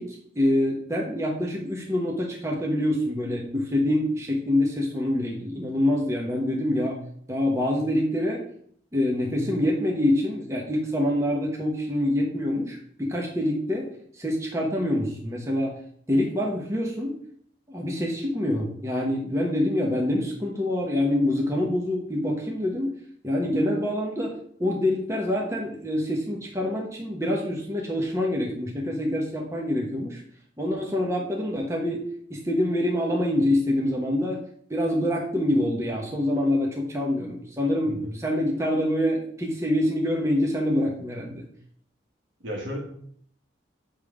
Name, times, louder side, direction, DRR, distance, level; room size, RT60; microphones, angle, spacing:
voice 1, 0.0-7.0 7.3-8.4 8.9-13.9 14.1-15.8 16.1-17.2 17.7-22.9 23.2-30.2 30.6-32.0 32.3-41.5, left 1 dB, 15° right, -2 dB, 1.1 m, -26 dB
voice 2, 42.4-42.8, equal, 80° right, 0 dB, 1.8 m, -33 dB
7.4 x 3.6 x 4.9 m, 0.63 s
head